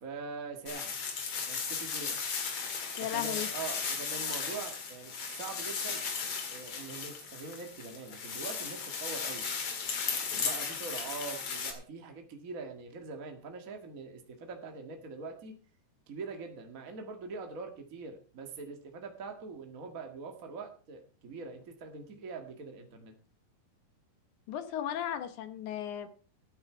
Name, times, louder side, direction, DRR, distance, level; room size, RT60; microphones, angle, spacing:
voice 1, 0.0-1.0 1.4-2.2 3.1-6.0 6.5-9.4 10.3-15.5 16.1-23.1, right 4 dB, 85° right, 4 dB, 0.7 m, -43 dB
sound 1, 0.7-11.7, left 5 dB, 45° left, 2.4 m, -36 dB
voice 2, 3.0-3.5 24.5-26.1, left 10 dB, 65° left, 9 dB, 2.0 m, -35 dB
15.0 x 9.5 x 4.5 m, 0.40 s
omnidirectional pair, 4.7 m